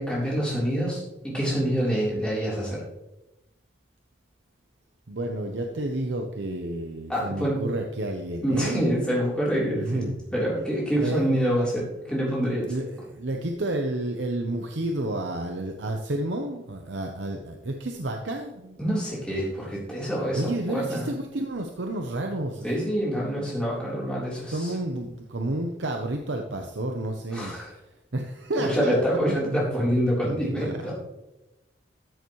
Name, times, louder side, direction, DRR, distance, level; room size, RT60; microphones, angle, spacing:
voice 1, 0.0-2.8 7.1-7.6 8.4-10.1 10.3-12.7 18.8-21.1 22.6-24.7 27.3-27.7 28.6-30.9, equal, 5° left, -6 dB, 3.7 m, -26 dB
voice 2, 5.1-8.8 9.8-10.2 11.0-11.4 12.6-18.8 20.3-22.7 24.5-27.6 28.1-29.0 30.3-30.7, right 1 dB, 80° right, 3 dB, 0.8 m, -30 dB
14.0 x 6.9 x 3.2 m, 0.94 s
head